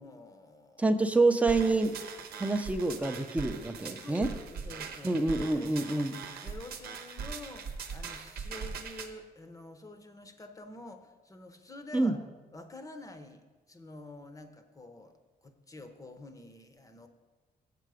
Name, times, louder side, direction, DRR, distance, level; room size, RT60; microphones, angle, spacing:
voice 1, 0.0-1.0 4.0-6.1 6.4-12.3 12.5-17.1, left 2 dB, 20° left, 7 dB, 0.8 m, -48 dB
voice 2, 0.8-2.0 2.4-4.3 5.0-6.2 11.9-12.2, right 2 dB, 10° right, 7 dB, 0.6 m, -27 dB
sound 1, 1.5-9.1, right 6 dB, 75° right, 0.9 m, -41 dB
7.3 x 6.8 x 4.9 m, 1.3 s
cardioid pair, 85°, 16 cm